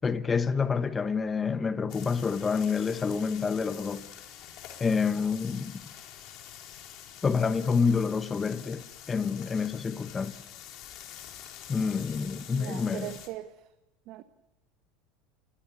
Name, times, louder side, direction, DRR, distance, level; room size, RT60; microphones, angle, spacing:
voice 1, 0.0-4.0 4.8-5.8 7.2-10.4 11.7-13.1, left 5 dB, 25° left, 1.2 m, -28 dB
sound 1, 1.9-13.3, left 10 dB, 55° left, 4.5 m, -47 dB
voice 2, 12.5-13.7 14.1-14.2, right 15 dB, 60° right, 1.3 m, -40 dB
28.0 x 22.0 x 7.0 m
hypercardioid pair, 80°, 0 cm